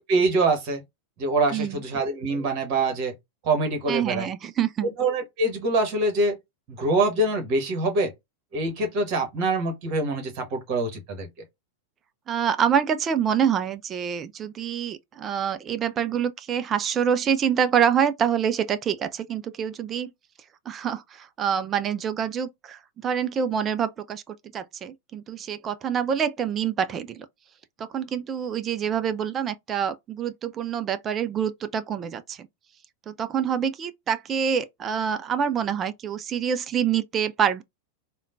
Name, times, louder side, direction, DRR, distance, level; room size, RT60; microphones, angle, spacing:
voice 1, 0.1-0.8 1.2-3.1 3.4-4.3 4.8-6.4 6.7-8.1 8.5-11.3, right 2 dB, 40° right, 1.2 m, -24 dB
voice 2, 3.9-4.9 12.3-20.1 20.7-27.3 27.8-32.5 33.1-37.6, right 8 dB, 25° right, 0.3 m, -26 dB
3.5 x 2.2 x 2.5 m
figure-of-eight pair, 90°, 0 cm